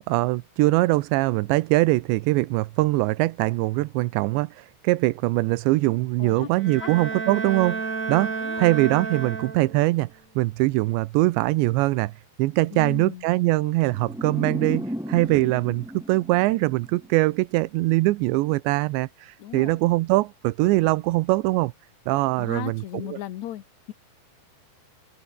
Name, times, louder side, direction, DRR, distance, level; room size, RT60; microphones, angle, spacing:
voice 1, 0.1-10.1 10.4-12.1 12.4-21.7 22.1-23.2, right 20 dB, 85° right, 3.0 m, -22 dB
voice 2, 6.2-6.5 6.8-6.9 8.4-8.7 12.7-13.2 19.4-19.8 22.4-23.9, left 12 dB, 80° left, 1.6 m, -36 dB
Bowed string instrument, 6.6-10.0, right 4 dB, 30° right, 1.6 m, -31 dB
sound 1, 13.9-17.1, equal, ahead, 4.4 m, -34 dB
open air
omnidirectional pair, 5.0 m